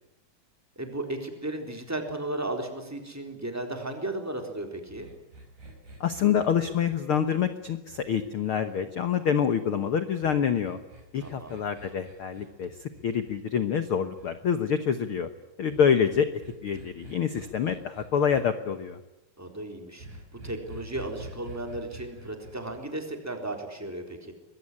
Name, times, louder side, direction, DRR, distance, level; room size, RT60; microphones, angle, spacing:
voice 1, 0.7-5.1 11.2-11.6 19.4-24.3, right 1 dB, 5° right, 4 dB, 3.4 m, -35 dB
sound 1, 4.8-9.3 10.2-14.3 15.7-18.4 20.0-22.8, right 2 dB, 55° right, 7.0 m, -47 dB
voice 2, 6.0-10.8 11.1-15.3 15.6-16.3 16.6-19.0, left 7 dB, 80° left, 10 dB, 1.2 m, -26 dB
24.0 x 22.0 x 9.9 m, 0.94 s
omnidirectional pair, 4.2 m